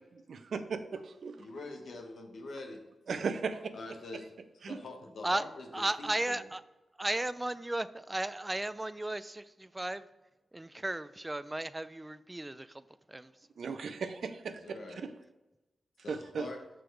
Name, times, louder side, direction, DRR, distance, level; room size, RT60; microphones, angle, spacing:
voice 1, 0.3-1.4 3.1-3.7 4.6-4.8 13.6-14.6 15.0-15.1 16.1-16.5, right 5 dB, 75° right, 9 dB, 0.5 m, -36 dB
voice 2, 1.4-2.8 3.7-4.3 4.6-6.4 14.5-15.0 16.0-16.6, left 2 dB, 70° left, 3 dB, 1.1 m, -45 dB
voice 3, 5.7-6.6 7.0-10.0 10.5-12.7 13.1-13.3, right 1 dB, 20° right, 15 dB, 0.4 m, -35 dB
6.1 x 4.7 x 4.6 m, 1.1 s
supercardioid pair, 45°, 0 cm